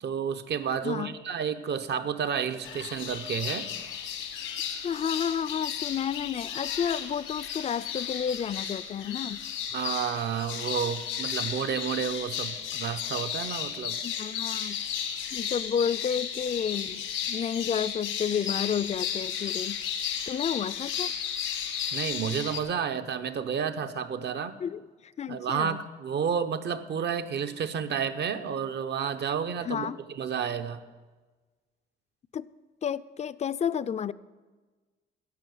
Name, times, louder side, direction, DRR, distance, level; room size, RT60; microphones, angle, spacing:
voice 1, 0.0-3.7 9.7-14.0 21.9-24.6 25.3-30.8, right 7 dB, 60° right, 11 dB, 0.8 m, -31 dB
voice 2, 0.8-1.2 4.7-9.4 14.0-14.8 15.3-19.8 20.3-21.1 24.6-25.8 29.6-30.0 32.3-32.5 32.8-34.1, left 8 dB, 35° left, 16 dB, 0.4 m, -31 dB
sound 1, 2.6-22.6, left 8 dB, 85° left, 1.3 m, -34 dB
10.5 x 7.8 x 7.7 m, 1.3 s
cardioid pair, 90°, 20 cm